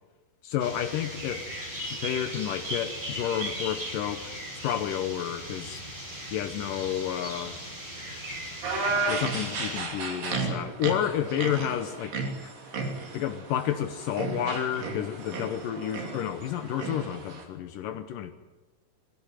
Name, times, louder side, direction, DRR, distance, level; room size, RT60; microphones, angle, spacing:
voice 1, 0.4-1.5 2.0-4.3 4.6-5.9 6.3-7.6 8.1-8.2 8.7-12.5 13.1-18.3, left 10 dB, 75° left, 2.6 m, -31 dB
sound 1, 0.6-9.8, right 1 dB, 15° right, 5.7 m, -38 dB
sound 2, 8.6-17.4, right 3 dB, 75° right, 4.8 m, -33 dB
22.0 x 16.5 x 9.1 m
omnidirectional pair, 4.0 m